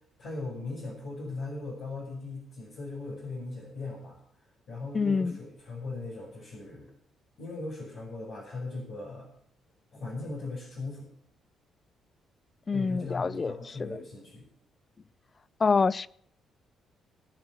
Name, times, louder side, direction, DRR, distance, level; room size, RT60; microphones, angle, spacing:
voice 1, 0.2-4.2 4.7-6.9 7.4-9.3 9.9-11.1 12.7-14.4, left 3 dB, 55° left, -5 dB, 5.6 m, -38 dB
voice 2, 4.9-5.4 12.7-13.5 13.9-14.0 15.6-16.1, left 4 dB, 35° left, 20 dB, 0.5 m, -26 dB
19.5 x 7.4 x 7.8 m, 0.66 s
figure-of-eight pair, 40°, 0 cm